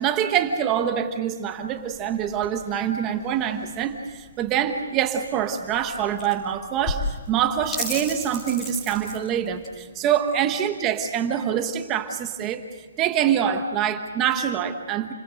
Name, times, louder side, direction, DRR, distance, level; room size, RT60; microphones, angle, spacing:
voice 1, 0.0-12.6 13.0-15.1, right 9 dB, 15° right, 6 dB, 1.2 m, -25 dB
sound 1, 1.5-9.7, left 1 dB, 10° left, 6.5 m, -35 dB
30.0 x 21.5 x 6.4 m, 1.4 s
hypercardioid pair, 175°, 0 cm